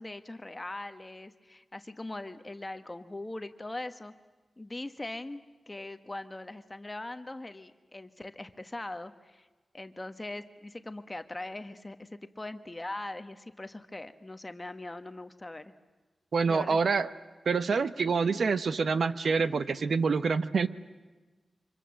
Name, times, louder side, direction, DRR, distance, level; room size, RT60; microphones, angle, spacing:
voice 1, 0.0-4.1 4.6-9.5 9.7-15.7 16.5-16.8, left 2 dB, 20° left, 9 dB, 1.2 m, -41 dB
voice 2, 16.3-17.1 17.5-20.7, right 5 dB, 65° right, 13 dB, 0.9 m, -26 dB
29.5 x 25.5 x 7.6 m, 1.2 s
wide cardioid pair, 160°, 0 cm